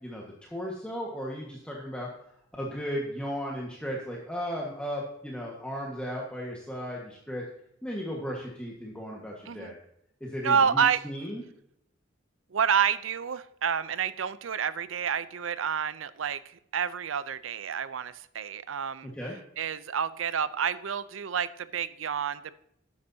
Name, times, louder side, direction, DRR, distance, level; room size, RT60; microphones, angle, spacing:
voice 1, 0.0-2.1 2.6-7.4 7.8-9.8 10.2-11.4 19.2-19.3, equal, 5° left, -3 dB, 1.6 m, -35 dB
voice 2, 10.4-11.0 12.5-19.1 19.6-22.6, right 7 dB, 90° right, 15 dB, 0.6 m, -29 dB
13.0 x 9.9 x 2.8 m, 0.76 s
head